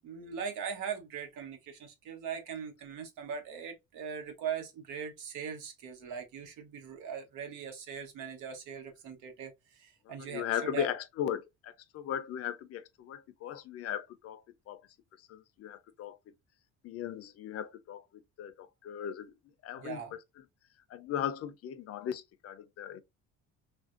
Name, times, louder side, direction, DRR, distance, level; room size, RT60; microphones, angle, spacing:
voice 1, 0.0-10.9 19.8-20.1, right 7 dB, 85° right, 1.1 m, -40 dB
voice 2, 10.2-14.4 14.7-14.8 15.3-16.2 16.8-18.0 18.4-19.3 19.6-20.2 20.9-23.0, left 10 dB, 50° left, 0.5 m, -37 dB
3.2 x 2.5 x 2.4 m
cardioid pair, 120°, 30 cm